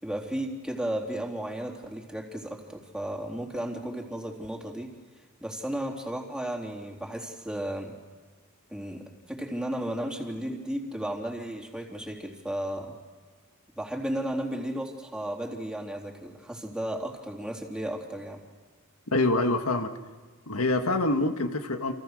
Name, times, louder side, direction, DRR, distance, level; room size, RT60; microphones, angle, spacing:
voice 1, 0.0-7.9 8.7-13.0 13.8-18.4, right 1 dB, 5° right, 1 dB, 3.4 m, -34 dB
voice 2, 19.1-19.9 20.5-21.9, left 2 dB, 85° left, 6 dB, 1.8 m, -25 dB
30.0 x 28.0 x 6.5 m, 1.5 s
head